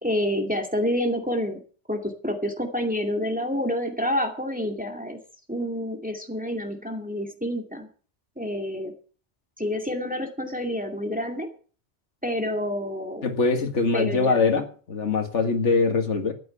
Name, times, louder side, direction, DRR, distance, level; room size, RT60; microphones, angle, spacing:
voice 1, 0.0-1.6 1.9-5.2 5.5-7.9 8.4-8.9 9.6-11.5 12.2-13.2 13.9-14.4, equal, 5° right, 3 dB, 2.4 m, -28 dB
voice 2, 13.2-16.3, left 4 dB, 85° left, 7 dB, 2.1 m, -23 dB
13.5 x 9.3 x 6.8 m, 0.41 s
omnidirectional pair, 1.2 m